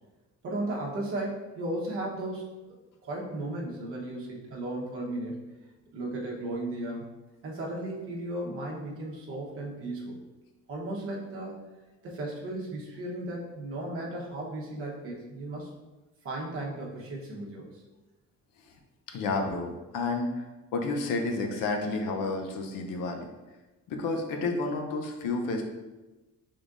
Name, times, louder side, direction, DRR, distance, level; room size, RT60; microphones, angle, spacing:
voice 1, 0.4-2.8 3.0-5.4 5.9-7.0 7.4-10.1 10.7-11.6 12.0-15.7 16.2-17.8, right 1 dB, 45° right, -3 dB, 1.0 m, -35 dB
voice 2, 19.1-20.5 20.7-23.3 23.9-25.6, left 3 dB, 80° left, 3 dB, 0.7 m, -30 dB
5.0 x 3.8 x 2.5 m, 1.1 s
cardioid pair, 160°, 32 cm